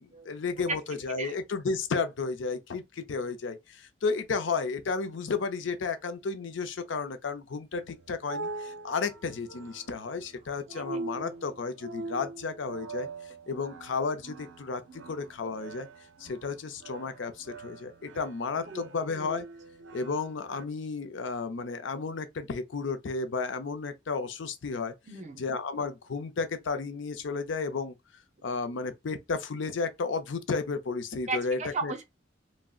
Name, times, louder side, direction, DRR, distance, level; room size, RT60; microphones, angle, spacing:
voice 1, 0.0-13.1 13.5-14.8 15.1-15.9 16.2-19.5 19.9-24.9 25.4-27.9 28.4-31.9, left 4 dB, 80° left, 0.5 m, -33 dB
sound 1, 7.8-20.6, right 3 dB, 80° right, 0.5 m, -43 dB
voice 2, 18.7-19.1 25.1-25.4 31.3-32.0, right 3 dB, 40° right, 0.7 m, -35 dB
3.6 x 2.0 x 2.3 m
head